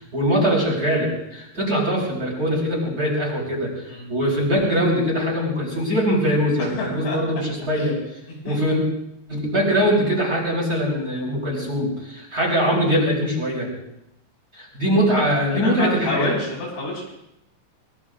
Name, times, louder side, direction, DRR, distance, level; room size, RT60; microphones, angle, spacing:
voice 1, 0.1-8.0 8.4-8.8 9.3-13.7 14.5-16.3, equal, 20° right, -2 dB, 4.7 m, -22 dB
voice 2, 6.6-7.2 8.3-8.8 15.1-17.1, left 2 dB, 80° left, -2 dB, 8.5 m, -28 dB
24.5 x 22.0 x 2.5 m, 0.81 s
omnidirectional pair, 4.9 m